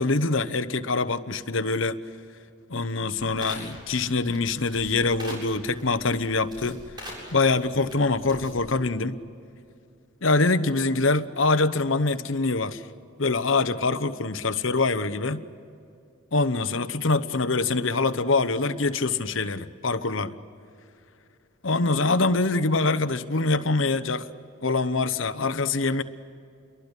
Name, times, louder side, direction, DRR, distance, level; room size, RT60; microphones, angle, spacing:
voice 1, 0.0-2.0 2.7-6.8 7.3-9.2 10.2-12.8 13.2-15.4 16.3-20.3 21.6-24.3 24.6-26.0, left 3 dB, 70° left, 1.1 m, -24 dB
sound 1, 3.1-8.7, equal, 20° right, 7.9 m, -44 dB
29.0 x 23.0 x 8.3 m
head